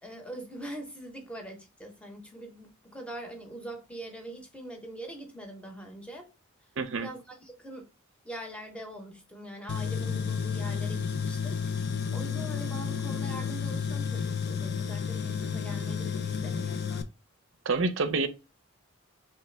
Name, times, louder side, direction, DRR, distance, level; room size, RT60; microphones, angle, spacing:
voice 1, 0.0-6.3 7.0-7.9 8.2-11.6 12.1-17.0, right 1 dB, 5° left, 0.8 m, -43 dB
voice 2, 6.8-7.1 17.7-18.3, right 3 dB, 60° right, 0.5 m, -27 dB
Tools, 9.7-17.0, left 6 dB, 50° left, 0.4 m, -31 dB
3.3 x 3.2 x 3.2 m
head